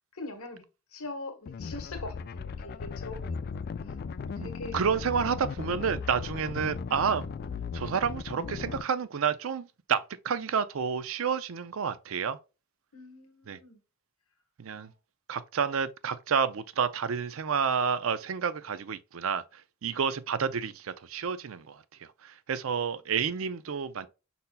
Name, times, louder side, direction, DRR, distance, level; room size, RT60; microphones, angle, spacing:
voice 1, 0.1-0.6 0.9-4.8 12.9-13.8 14.7-14.9 22.7-22.9, left 2 dB, 85° left, 1.3 m, -43 dB
sound 1, 1.5-8.8, left 5 dB, 45° left, 0.3 m, -37 dB
voice 2, 4.4-7.3 7.7-12.4 13.5-13.6 14.6-14.9 15.3-21.8 22.2-24.1, right 6 dB, 70° right, 0.5 m, -30 dB
5.4 x 4.1 x 2.2 m
head